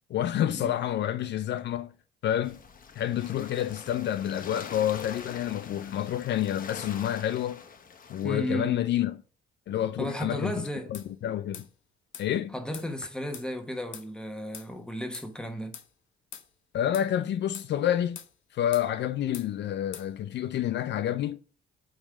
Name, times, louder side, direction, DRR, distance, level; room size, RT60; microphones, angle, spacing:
voice 1, 0.1-1.9 2.2-2.6 3.0-7.6 8.1-9.2 9.7-10.5 10.9-11.6 12.2-12.5 16.7-18.2 18.5-21.4, left 11 dB, 65° left, 0.5 m, -28 dB
sound 1, 2.4-8.5, left 5 dB, 45° left, 1.0 m, -44 dB
voice 2, 8.2-8.9 10.0-10.9 12.5-15.7, equal, 5° left, 1.3 m, -34 dB
sound 2, 10.9-11.1 11.5-11.7 12.1-12.3 12.7-12.9 13.3-13.5 13.9-14.1 14.5-14.7 15.1-15.3 15.7-15.9 16.3-16.5 16.9-17.1 17.5-17.7 18.2-18.3 18.7-18.9 19.3-19.5 19.9-20.1, left 9 dB, 80° left, 1.0 m, -43 dB
8.9 x 3.2 x 5.0 m
cardioid pair, 90°, 20 cm